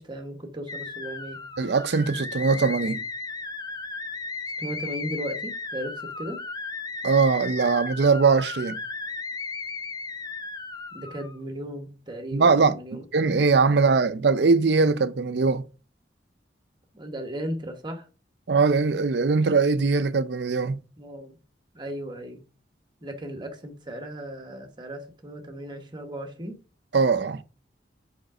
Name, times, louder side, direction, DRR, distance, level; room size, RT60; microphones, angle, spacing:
voice 1, 0.0-1.4 4.6-6.4 10.9-13.0 13.7-13.9 16.9-18.1 21.0-21.3 21.7-22.4 23.0-26.6, equal, 25° right, 1.3 m, -36 dB
sound 1, 0.7-11.4, left 3 dB, 20° left, 0.5 m, -35 dB
voice 2, 1.6-3.0 7.0-8.8 12.3-12.7 13.1-15.6 18.5-20.8 26.9-27.4, right 4 dB, 65° right, 0.5 m, -21 dB
5.1 x 5.1 x 4.9 m
head